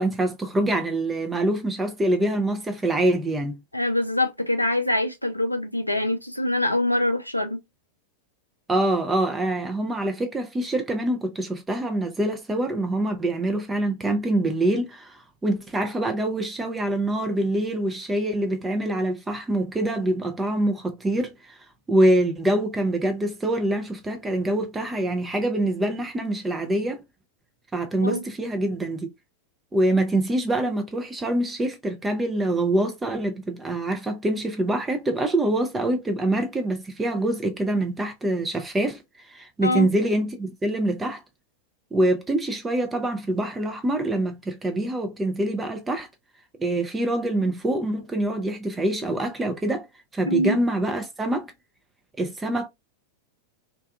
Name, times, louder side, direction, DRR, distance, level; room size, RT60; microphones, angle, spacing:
voice 1, 0.0-3.6 8.7-21.6 21.9-27.0 27.7-29.1 29.7-41.2 41.9-46.1 46.6-49.9 50.1-51.5 52.2-52.7, right 1 dB, 15° right, 0.5 m, -25 dB
voice 2, 3.7-7.6 28.0-28.2 39.6-39.9 50.3-50.6, left 1 dB, 85° left, 0.4 m, -24 dB
2.6 x 2.3 x 2.3 m
figure-of-eight pair, 90°, 0 cm